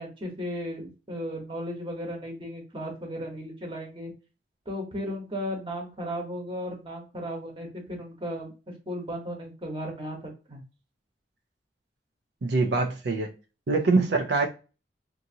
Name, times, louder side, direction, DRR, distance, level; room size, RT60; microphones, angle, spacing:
voice 1, 0.0-4.1 4.7-8.5 8.9-10.6, equal, 30° right, 1.0 m, -35 dB
voice 2, 12.4-13.3 13.7-14.5, right 3 dB, 85° right, 0.5 m, -24 dB
2.7 x 2.6 x 2.6 m
head